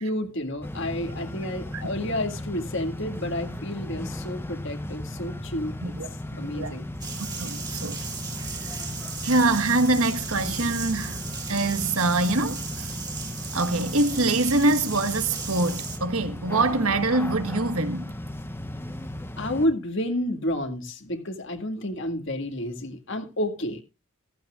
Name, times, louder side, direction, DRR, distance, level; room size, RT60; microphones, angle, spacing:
voice 1, 0.0-5.9 6.4-6.9 19.4-23.8, left 1 dB, 55° left, 2.0 m, -30 dB
sound 1, 0.6-19.7, left 1 dB, 10° left, 1.1 m, -36 dB
sound 2, 7.0-16.0, right 5 dB, 20° right, 2.4 m, -36 dB
voice 2, 7.4-8.0 8.6-8.7 9.2-11.2 11.5-12.9 13.5-18.1, right 2 dB, 80° right, 1.5 m, -24 dB
15.0 x 15.0 x 2.4 m
head